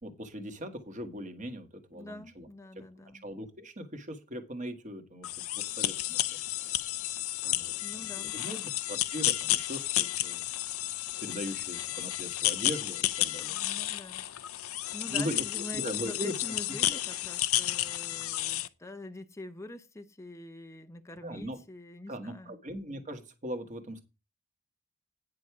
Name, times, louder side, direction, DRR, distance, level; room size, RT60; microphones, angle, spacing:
voice 1, 0.0-2.5 2.7-2.8 3.2-5.3 5.5-6.2 7.4-8.6 8.9-10.4 11.2-13.8 15.1-16.3 16.9-17.0 21.2-21.6 22.1-24.0, equal, 35° right, 1.7 m, -39 dB
voice 2, 1.9-3.2 7.8-8.7 13.5-14.3 14.9-22.6, left 1 dB, 15° left, 0.7 m, -45 dB
sound 1, 5.2-18.7, left 14 dB, 65° left, 0.6 m, -32 dB
9.6 x 6.7 x 4.8 m
head